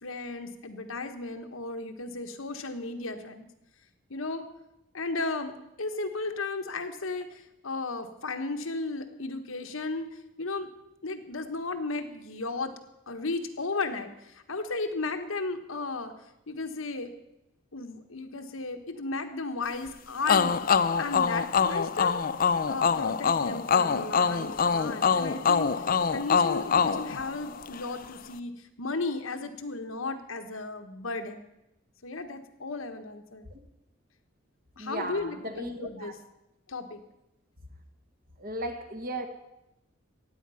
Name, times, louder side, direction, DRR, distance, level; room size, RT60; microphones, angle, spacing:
voice 1, 0.0-3.5 4.1-4.5 4.9-10.1 10.4-10.7 11.0-12.7 13.1-16.1 16.5-17.1 17.7-22.2 22.7-28.5 28.8-31.5 32.0-33.5 34.8-36.1 36.7-37.0, left 3 dB, 85° left, 6 dB, 1.3 m, -35 dB
sound 1, 20.3-27.9, left 6 dB, 45° left, 0.5 m, -25 dB
voice 2, 34.8-36.1 38.4-39.3, right 1 dB, 45° right, 5 dB, 1.6 m, -36 dB
16.0 x 9.6 x 5.7 m, 0.88 s
head